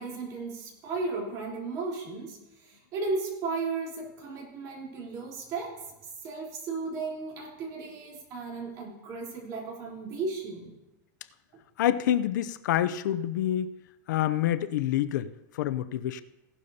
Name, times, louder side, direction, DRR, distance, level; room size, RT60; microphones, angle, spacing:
voice 1, 0.0-5.8 6.2-10.8 11.5-11.6, right 3 dB, 35° right, -2 dB, 3.6 m, -35 dB
voice 2, 11.8-13.7 14.1-16.2, left 11 dB, 75° left, 13 dB, 0.6 m, -27 dB
16.5 x 12.0 x 2.8 m, 0.97 s
supercardioid pair, 155°, 10 cm